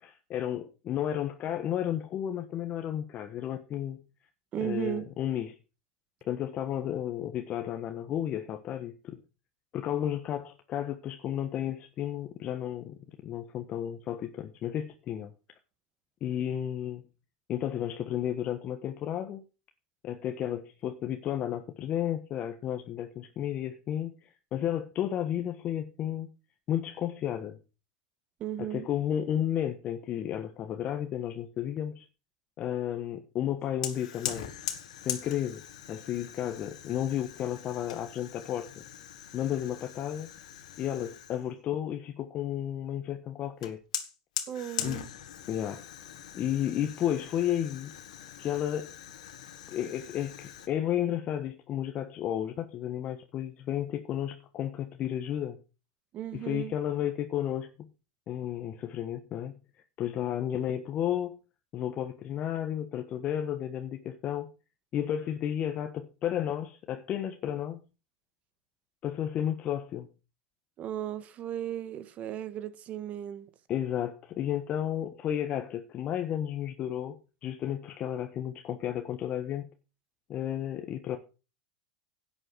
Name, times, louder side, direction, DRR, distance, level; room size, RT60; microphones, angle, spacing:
voice 1, 0.0-4.0 4.6-5.6 6.2-9.2 9.7-15.3 16.2-17.0 17.5-19.4 20.0-26.3 26.7-27.6 28.6-32.1 32.6-34.5 35.0-38.7 39.3-40.3 40.8-43.8 44.8-45.0 45.5-45.8 46.3-47.9 48.4-48.9 49.7-55.6 56.3-57.9 58.3-59.6 60.0-61.4 61.7-64.5 64.9-67.8 69.0-70.1 73.7-79.7 80.3-81.2, left 10 dB, 40° left, 1.3 m, -32 dB
voice 2, 4.5-5.1 28.4-28.9 44.5-45.1 56.1-56.7 70.8-73.5, right 11 dB, 40° right, 1.5 m, -35 dB
Fire, 33.8-41.5 43.6-50.7, left 10 dB, 80° left, 2.1 m, -41 dB
11.0 x 7.8 x 6.2 m
hypercardioid pair, 110°, 4 cm